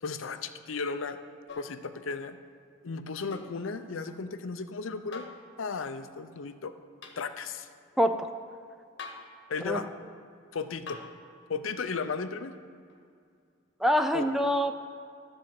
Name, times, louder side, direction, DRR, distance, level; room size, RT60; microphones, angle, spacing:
voice 1, 0.0-1.2 1.5-2.4 2.8-5.3 5.6-6.7 7.2-7.7 9.5-9.9 10.5-11.0 11.5-12.5 14.1-14.2, left 4 dB, 75° left, 10 dB, 0.6 m, -35 dB
sound 1, 1.5-1.8 3.3-3.6 5.1-5.4 7.0-7.2 9.0-9.3 10.9-11.2 12.9-13.0, left 4 dB, 60° left, 1.1 m, -43 dB
voice 2, 8.0-8.3 9.6-9.8 13.8-14.7, equal, ahead, 7 dB, 0.3 m, -25 dB
12.5 x 4.4 x 7.6 m, 2.3 s
head